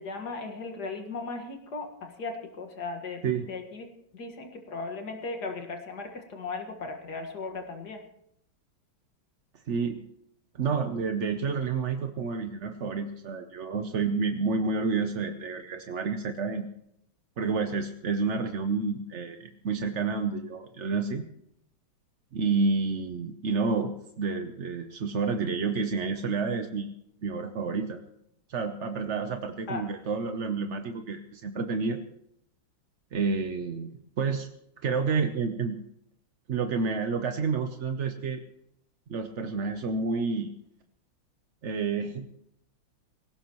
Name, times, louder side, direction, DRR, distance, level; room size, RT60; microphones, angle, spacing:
voice 1, 0.0-3.2 3.5-3.9 4.1-8.0 29.7-29.8, left 3 dB, 55° left, 4 dB, 2.3 m, -37 dB
voice 2, 9.7-10.0 10.5-16.7 17.4-21.3 22.3-26.9 27.2-28.0 28.5-32.0 33.1-33.9 34.2-34.5 34.8-35.8 36.5-38.4 39.1-40.5 41.6-42.3, right 4 dB, 55° right, 6 dB, 0.8 m, -29 dB
19.0 x 16.5 x 3.1 m, 0.74 s
omnidirectional pair, 2.2 m